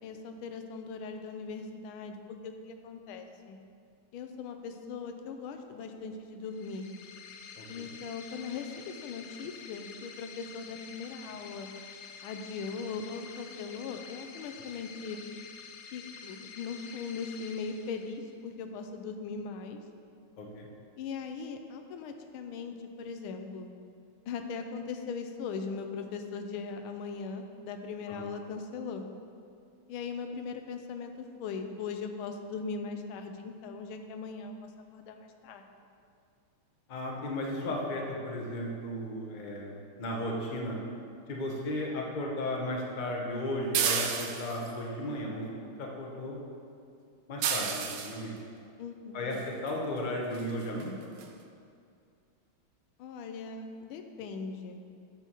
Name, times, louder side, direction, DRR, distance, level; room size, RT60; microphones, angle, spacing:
voice 1, 0.0-3.6 4.1-6.9 7.7-11.7 12.2-15.2 15.9-19.8 21.0-23.7 24.3-29.0 29.9-35.7 48.8-49.4 53.0-54.8, left 5 dB, 85° left, 6 dB, 1.4 m, -39 dB
sound 1, 6.5-18.4, left 6 dB, 70° left, 1.0 m, -48 dB
voice 2, 20.4-20.7 28.2-28.3 36.9-40.8 41.3-45.4 45.8-46.4 47.3-48.4 49.1-50.9, left 1 dB, 40° left, -1 dB, 0.6 m, -35 dB
sound 2, 43.7-44.7 47.4-48.2 49.7-49.8 50.3-50.5 50.8-50.9 51.2-51.3, right 8 dB, 75° right, 1.1 m, -30 dB
9.1 x 6.4 x 3.0 m, 2.4 s
omnidirectional pair, 2.2 m